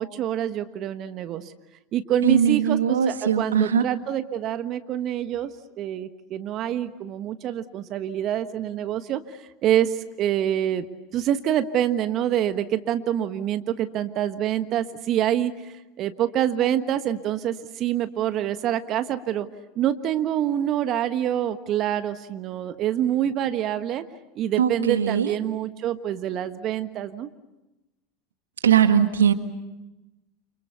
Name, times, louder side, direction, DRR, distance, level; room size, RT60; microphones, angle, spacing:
voice 1, 0.0-1.5 1.9-10.9 11.1-19.5 19.7-24.0 24.3-27.3, right 11 dB, 45° right, 10 dB, 1.4 m, -26 dB
voice 2, 2.2-3.8 24.6-25.3 28.6-29.3, right 8 dB, 80° right, 9 dB, 1.6 m, -20 dB
29.5 x 27.5 x 6.9 m, 1.0 s
hypercardioid pair, 80°, 0 cm